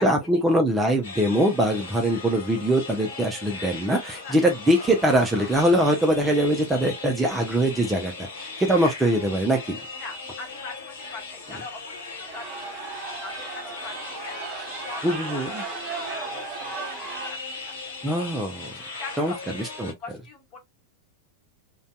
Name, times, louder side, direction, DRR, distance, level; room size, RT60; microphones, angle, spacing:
voice 1, 0.0-9.8 15.0-15.6 18.0-18.7 19.2-19.9, right 1 dB, 10° right, 0.5 m, -23 dB
sound 1, 1.0-19.9, left 4 dB, 60° left, 1.0 m, -39 dB
sound 2, 1.7-2.1 2.6-2.7 3.1-3.7 6.9-7.0 8.1-8.2 8.4-8.8 9.2-9.3 10.0-10.1 10.4-10.6 11.0-11.4 12.0-17.3, right 5 dB, 30° right, 0.8 m, -37 dB
voice 2, 10.0-16.6 17.1-17.8 18.7-20.6, left 4 dB, 35° left, 1.1 m, -42 dB
2.6 x 2.2 x 2.3 m
figure-of-eight pair, 90°, 0 cm